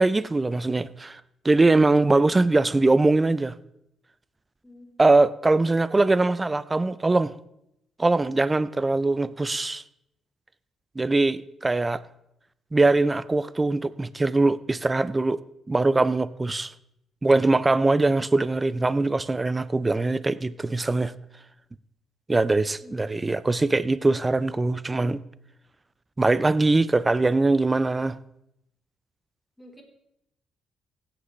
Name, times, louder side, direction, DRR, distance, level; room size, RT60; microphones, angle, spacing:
voice 1, 0.0-3.5 5.0-7.3 8.0-9.8 11.0-12.0 12.7-15.4 15.7-16.7 17.2-21.1 22.3-25.2 26.2-28.2, right 2 dB, 20° right, 0.4 m, -22 dB
voice 2, 22.8-23.2 29.6-29.8, left 1 dB, 5° left, 3.2 m, -48 dB
16.5 x 8.7 x 3.1 m
cardioid pair, 90°, 0 cm